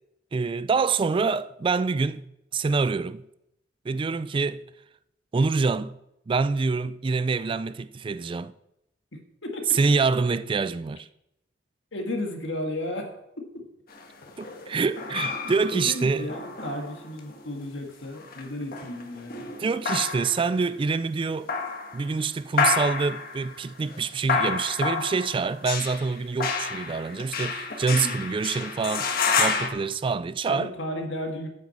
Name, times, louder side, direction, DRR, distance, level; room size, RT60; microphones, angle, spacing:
voice 1, 0.3-2.2 2.5-3.2 3.9-4.6 5.3-5.9 6.3-8.5 9.7-11.1 14.4-16.3 19.6-21.5 21.9-29.1 29.4-30.7, right 4 dB, 30° right, 0.3 m, -26 dB
voice 2, 9.4-9.8 11.9-13.6 15.4-19.5 27.9-28.3 30.5-31.5, left 1 dB, 80° left, 2.0 m, -34 dB
sound 1, 13.9-17.4 18.0-20.6 21.3-22.1 22.6-29.7, left 5 dB, 55° left, 1.4 m, -29 dB
9.1 x 6.1 x 7.2 m
head